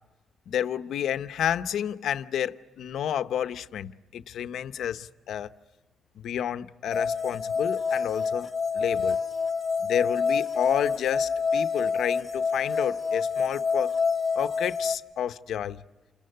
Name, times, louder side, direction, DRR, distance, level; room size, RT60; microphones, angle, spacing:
voice 1, 0.5-5.5 6.1-8.5 8.7-9.2 9.8-14.0 14.3-15.8, left 10 dB, 75° left, 0.8 m, -30 dB
sound 1, 6.9-15.0, left 5 dB, 25° left, 1.5 m, -27 dB
29.5 x 27.5 x 6.8 m
cardioid pair, 100°, 0 cm